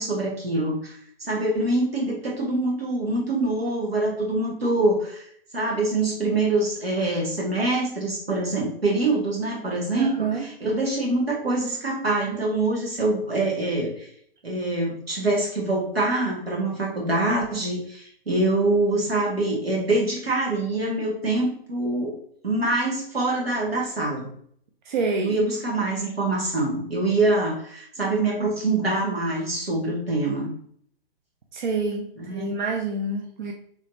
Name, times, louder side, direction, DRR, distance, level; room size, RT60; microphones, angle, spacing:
voice 1, 0.0-5.2 5.5-14.1 14.4-22.2 22.4-24.3 25.2-30.5 32.2-32.5, right 2 dB, 80° right, -2 dB, 1.5 m, -25 dB
voice 2, 10.0-10.5 24.8-25.4 31.5-33.5, right 3 dB, 50° right, 2 dB, 0.6 m, -27 dB
3.8 x 3.1 x 2.6 m, 0.63 s
figure-of-eight pair, 120°, 30 cm